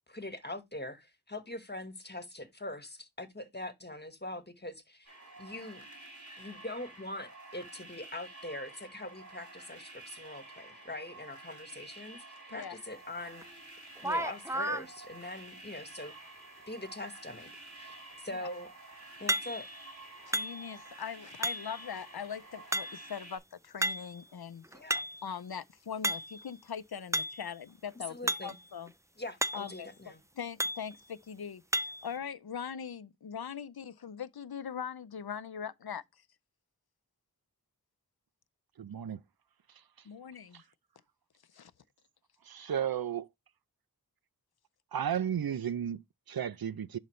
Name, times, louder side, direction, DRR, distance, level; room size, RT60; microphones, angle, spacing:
voice 1, 0.1-5.1 5.4-5.8 6.4-13.4 14.0-16.1 16.7-18.7 19.2-19.7 24.7-25.1 28.1-28.5 29.2-30.2, left 1 dB, 25° left, 1.5 m, -43 dB
sound 1, 5.0-23.4, right 2 dB, 50° right, 4.0 m, -50 dB
sound 2, 13.4-13.5 14.0-14.9 19.3-19.8 20.3-20.9 21.4-21.9 22.7-23.2 23.8-24.2 24.6-25.3 26.0-26.5 27.1-27.5 28.3-28.6 28.9-29.0 29.4-29.8 30.6-30.9 31.7-32.1, right 1 dB, 10° right, 0.4 m, -33 dB
voice 2, 20.2-24.6 24.9-28.9 29.5-36.2 40.0-40.6 41.5-41.7 42.6-42.7, left 7 dB, 85° left, 0.6 m, -41 dB
voice 3, 38.8-39.2 40.5-40.6 42.4-43.3 44.9-47.0, right 9 dB, 75° right, 0.5 m, -34 dB
11.0 x 4.0 x 3.2 m
wide cardioid pair, 45°, 37 cm